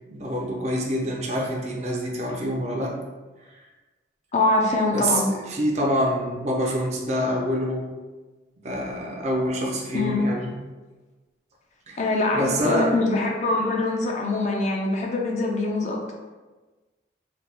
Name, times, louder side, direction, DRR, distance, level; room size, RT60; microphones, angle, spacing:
voice 1, 0.1-3.0 3.4-3.6 4.9-7.9 8.6-10.6 11.9-12.0 12.3-12.9, equal, 40° right, -1 dB, 0.4 m, -26 dB
voice 2, 4.3-5.3 9.9-10.3 12.0-16.0, left 2 dB, 40° left, 0 dB, 0.4 m, -23 dB
3.3 x 2.2 x 2.8 m, 1.2 s
head